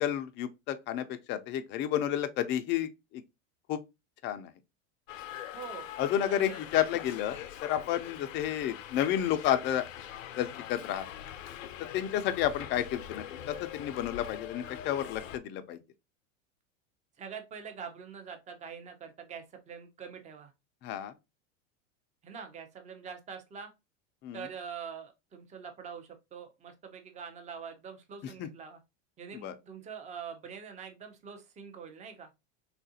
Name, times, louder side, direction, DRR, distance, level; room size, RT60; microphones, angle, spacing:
voice 1, 0.0-3.2 3.7-3.8 4.2-4.5 6.0-9.8 10.4-11.0 11.9-15.8 20.8-21.1 24.2-24.5 28.4-28.5 29.4-29.5, left 11 dB, 30° left, 0.4 m, -31 dB
Subway metro underground, 5.1-15.4, left 10 dB, 85° left, 0.5 m, -43 dB
voice 2, 5.5-5.9 6.3-6.6 17.2-20.5 22.2-23.7 24.3-28.8 29.2-32.3, right 6 dB, 20° right, 0.6 m, -44 dB
3.6 x 2.4 x 2.6 m
supercardioid pair, 115°, 38 cm